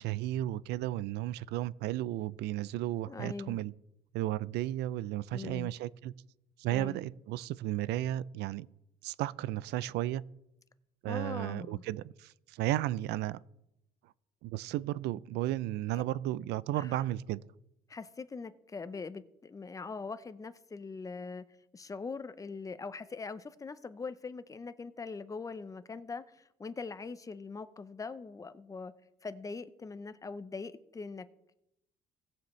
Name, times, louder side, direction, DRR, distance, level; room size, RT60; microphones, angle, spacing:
voice 1, 0.0-3.7 4.1-6.1 6.6-8.7 9.0-10.2 11.0-13.4 14.4-17.4, right 14 dB, 80° right, 0.4 m, -34 dB
voice 2, 3.1-3.6 5.3-5.7 6.7-7.0 11.1-11.8 16.7-17.0 17.9-21.5 21.7-28.9 29.2-31.3, left 4 dB, 20° left, 0.6 m, -42 dB
18.5 x 7.1 x 3.2 m
cardioid pair, 110°, 17 cm